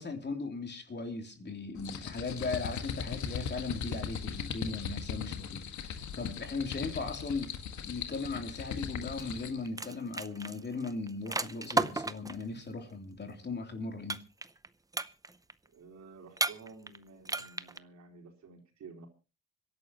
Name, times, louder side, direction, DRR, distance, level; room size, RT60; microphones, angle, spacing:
voice 1, 0.0-7.5 7.8-14.2, left 3 dB, 35° left, 4 dB, 3.3 m, -38 dB
sound 1, 1.8-9.6, left 7 dB, 70° left, 1.8 m, -39 dB
sound 2, 9.2-9.4 9.7-12.4 14.1-14.7 14.9-15.5 16.4-17.0 17.2-17.8, right 3 dB, 10° right, 0.7 m, -33 dB
voice 2, 15.7-19.1, right 4 dB, 65° right, 2 dB, 4.2 m, -52 dB
26.0 x 11.5 x 3.0 m, 0.32 s
cardioid pair, 90°, 30 cm